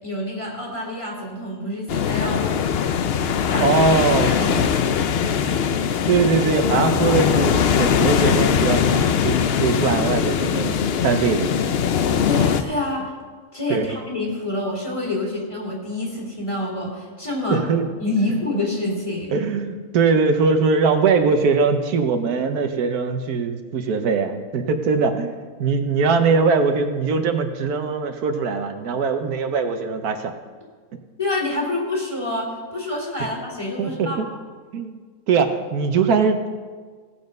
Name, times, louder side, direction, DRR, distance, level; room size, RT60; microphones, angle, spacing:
voice 1, 0.0-2.4 3.5-3.8 4.1-4.7 12.2-13.1 13.5-17.6 18.0-19.4 31.2-32.5 32.7-34.2, left 2 dB, 20° left, -2 dB, 3.0 m, -27 dB
sound 1, 1.9-12.6, left 7 dB, 60° left, 0.6 m, -21 dB
voice 2, 3.6-4.3 6.1-11.7 13.7-13.9 17.5-17.8 19.3-30.3 33.8-34.3 34.7-35.0 35.3-36.5, right 5 dB, 85° right, 7 dB, 1.4 m, -21 dB
16.5 x 7.1 x 5.3 m, 1.5 s
omnidirectional pair, 1.6 m